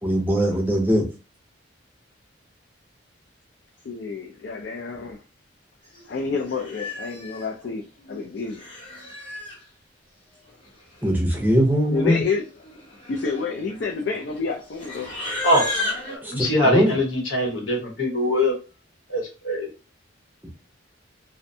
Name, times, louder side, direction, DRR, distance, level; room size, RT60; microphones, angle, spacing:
voice 1, 0.0-1.1 11.0-12.2 16.2-17.0, equal, 10° right, 0.5 m, -21 dB
voice 2, 3.9-5.2 6.1-8.6 11.9-12.4 13.1-15.1, left 4 dB, 60° left, 0.4 m, -29 dB
Livestock farm animals working animals, 5.9-6.1 6.5-7.4 8.3-9.6 10.6-10.7 10.9-11.4 11.7-11.9 12.6-16.2, left 2 dB, 30° left, 0.8 m, -34 dB
voice 3, 15.4-17.0 17.3-18.5 19.1-19.7, left 1 dB, 90° left, 1.1 m, -23 dB
2.5 x 2.1 x 2.6 m
head